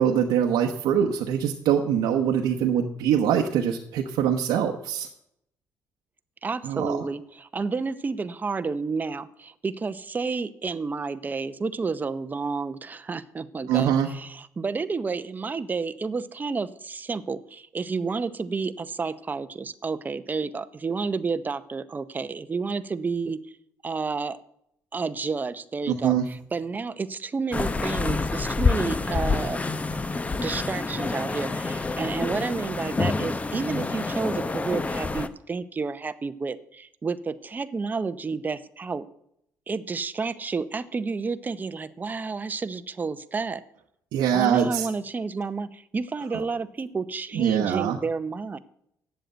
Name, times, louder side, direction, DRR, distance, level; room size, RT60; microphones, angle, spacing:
voice 1, 0.0-5.1 6.6-7.0 13.7-14.1 25.9-26.3 44.1-44.9 46.3-46.4 47.3-48.0, right 9 dB, 90° right, 2 dB, 1.0 m, -23 dB
voice 2, 6.4-23.4 23.8-24.4 24.9-29.6 30.4-39.1 39.7-43.6 44.3-48.6, right 4 dB, 25° right, 12 dB, 0.7 m, -30 dB
sound 1, 27.5-35.3, left 3 dB, 20° left, 0.7 m, -27 dB
9.1 x 7.7 x 7.9 m, 0.75 s
cardioid pair, 105°, 7 cm